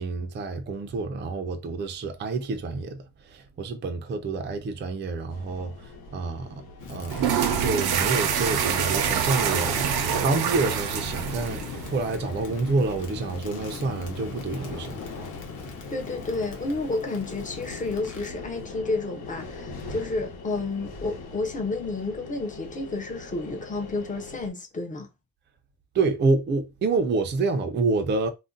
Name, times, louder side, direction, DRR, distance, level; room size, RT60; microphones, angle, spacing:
voice 1, 0.0-6.6 6.9-15.0 25.9-28.3, right 3 dB, 30° right, 0.4 m, -28 dB
sound 1, 5.3-24.5, left 3 dB, 80° left, 1.0 m, -42 dB
Crackle, 6.8-18.4, left 5 dB, 55° left, 0.8 m, -39 dB
sound 2, 7.1-12.1, right 8 dB, 85° right, 0.6 m, -26 dB
voice 2, 15.9-25.1, left 3 dB, 20° left, 0.6 m, -31 dB
2.5 x 2.1 x 3.7 m
wide cardioid pair, 175°, 37 cm